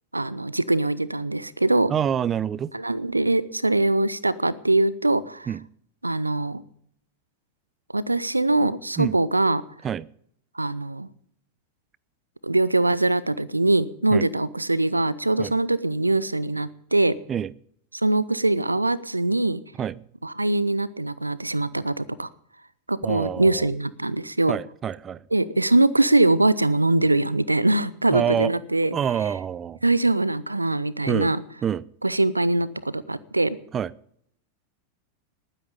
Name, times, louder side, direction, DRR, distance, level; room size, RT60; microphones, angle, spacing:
voice 1, 0.1-1.9 2.7-5.5 6.0-6.6 7.9-9.6 10.5-11.1 12.4-17.1 17.9-19.6 20.2-22.3 22.9-24.6 25.3-29.0 29.8-31.4 32.0-33.6, right 2 dB, 85° right, 0.7 m, -22 dB
voice 2, 1.9-2.7 5.5-5.6 9.0-9.1 9.8-10.1 14.1-14.3 15.4-15.5 17.3-17.5 19.8-20.0 23.0-23.7 24.5-25.2 28.1-28.5 28.9-29.8 31.1-31.3 31.6-31.8 33.7-33.9, right 9 dB, 25° right, 0.5 m, -26 dB
19.5 x 10.0 x 5.2 m
figure-of-eight pair, 90°, 0 cm